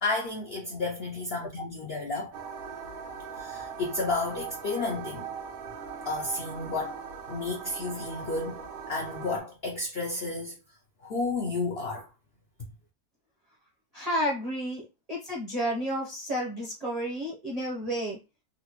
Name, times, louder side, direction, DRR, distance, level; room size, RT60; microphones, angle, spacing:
voice 1, 0.0-2.3 3.3-5.3 6.0-7.0 7.3-10.6 11.0-12.1, left 3 dB, 65° left, 0.6 m, -32 dB
sound 1, 2.3-9.4, right 6 dB, 70° right, 1.0 m, -40 dB
voice 2, 13.9-18.2, equal, 40° right, 0.6 m, -31 dB
3.8 x 2.1 x 2.9 m
omnidirectional pair, 1.6 m